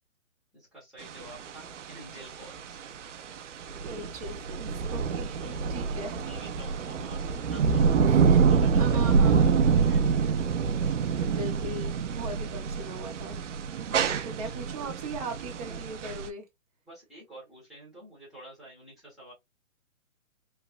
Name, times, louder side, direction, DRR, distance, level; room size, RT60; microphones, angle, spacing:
voice 1, 0.5-2.8 5.3-5.7 6.2-7.9 8.4-10.0 16.9-19.3, right 1 dB, ahead, 0.9 m, -49 dB
sound 1, 1.0-16.3, right 5 dB, 65° right, 0.5 m, -26 dB
voice 2, 3.9-6.2 8.0-9.7 11.2-13.4 13.9-16.5, right 2 dB, 30° right, 0.7 m, -39 dB
3.1 x 2.0 x 2.3 m
hypercardioid pair, 150°, 40 cm